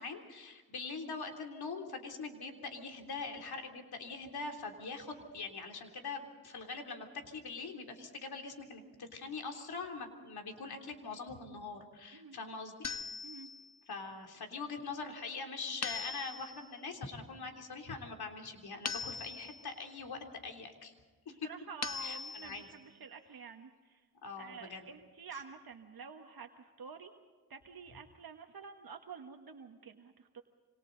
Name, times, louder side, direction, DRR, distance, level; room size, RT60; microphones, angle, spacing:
voice 1, 0.0-12.7 13.9-20.9 21.2-21.5 22.0-22.7 24.2-24.9, left 4 dB, 90° left, 4 dB, 3.4 m, -43 dB
sound 1, 12.8-13.8 15.8-16.7 18.9-19.8 21.8-22.7, left 5 dB, 45° left, 1.3 m, -41 dB
voice 2, 21.3-24.0 24.4-27.1 27.5-30.4, right 5 dB, 75° right, 4 dB, 1.5 m, -49 dB
27.0 x 26.5 x 4.0 m, 1.3 s
cardioid pair, 65°, 37 cm